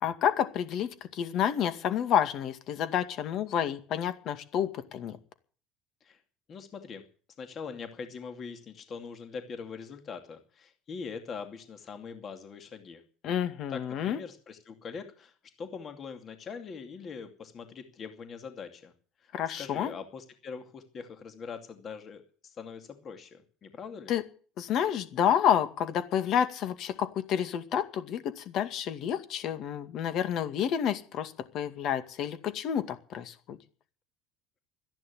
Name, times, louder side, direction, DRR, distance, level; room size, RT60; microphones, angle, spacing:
voice 1, 0.0-5.2 13.2-14.2 19.3-19.9 24.1-24.2 24.6-33.6, left 9 dB, 55° left, 10 dB, 2.1 m, -29 dB
voice 2, 6.5-7.0 7.4-13.0 13.7-15.3 15.6-18.9 19.2-19.3 19.6-24.1, left 5 dB, 35° left, 7 dB, 2.5 m, -42 dB
13.5 x 10.5 x 9.5 m, 0.41 s
supercardioid pair, 115°, 0 cm